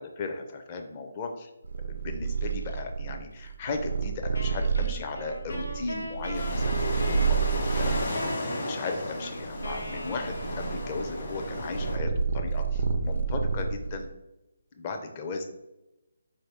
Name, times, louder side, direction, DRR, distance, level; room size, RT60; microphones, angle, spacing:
voice 1, 0.0-1.5 1.9-14.1 14.8-15.4, left 3 dB, 30° left, 4 dB, 0.5 m, -36 dB
Purr, 1.6-8.2 8.8-14.1, right 5 dB, 70° right, 0.4 m, -29 dB
Wind instrument woodwind instrument, 4.3-10.9, left 1 dB, 80° left, 0.8 m, -39 dB
sound 1, 6.3-12.0, left 1 dB, 50° left, 1.1 m, -34 dB
4.2 x 2.7 x 3.3 m, 0.95 s
figure-of-eight pair, 155°, 0 cm